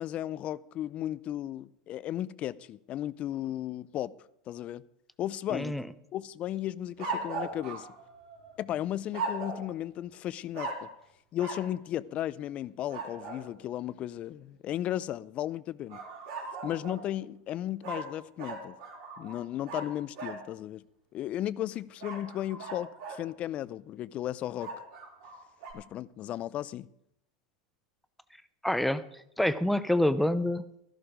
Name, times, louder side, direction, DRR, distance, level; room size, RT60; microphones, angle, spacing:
voice 1, 0.0-4.1 4.5-4.8 5.2-5.7 6.1-7.9 8.6-10.9 11.3-16.0 16.6-18.8 19.2-20.8 21.1-24.7 25.7-26.9, left 12 dB, 40° left, 0.5 m, -35 dB
voice 2, 5.5-5.8 28.6-29.0 29.4-30.6, left 1 dB, 5° left, 0.6 m, -26 dB
sound 1, 7.0-8.6 9.1-9.7 10.5-10.9 11.4-11.7 12.9-13.4 15.9-17.1 17.8-20.4 22.0-23.3 24.6-25.7, right 3 dB, 65° right, 4.5 m, -38 dB
13.5 x 11.5 x 5.0 m
hypercardioid pair, 110°, 3 cm